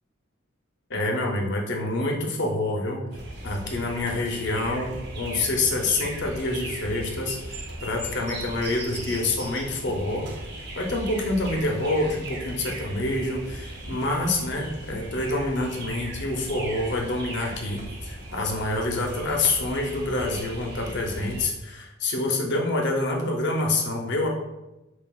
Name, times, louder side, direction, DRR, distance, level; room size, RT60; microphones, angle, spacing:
voice 1, 0.9-3.1 3.4-10.3 10.7-24.3, left 2 dB, 60° left, 1 dB, 0.6 m, -27 dB
sound 1, 3.1-21.5, right 1 dB, 55° right, 0.7 m, -38 dB
5.6 x 2.3 x 2.3 m, 1.0 s
head